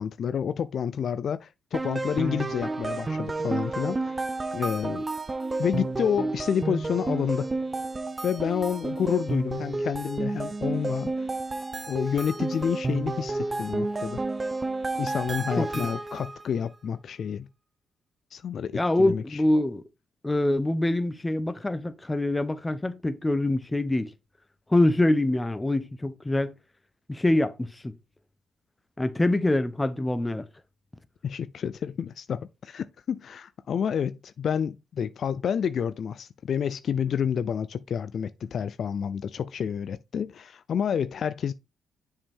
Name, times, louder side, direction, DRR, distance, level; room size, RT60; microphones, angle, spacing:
voice 1, 0.0-4.2 4.5-5.0 5.6-7.5 8.2-11.3 11.9-14.2 15.0-17.5 18.3-19.4 31.2-41.5, left 8 dB, 55° left, 0.4 m, -29 dB
sound 1, 1.7-16.4, right 3 dB, 25° right, 0.7 m, -31 dB
voice 2, 15.6-15.9 18.7-19.8 20.2-24.1 24.7-26.5 27.1-27.9 29.0-30.4, left 1 dB, 15° left, 0.8 m, -25 dB
7.1 x 5.4 x 3.5 m
cardioid pair, 90°, 0 cm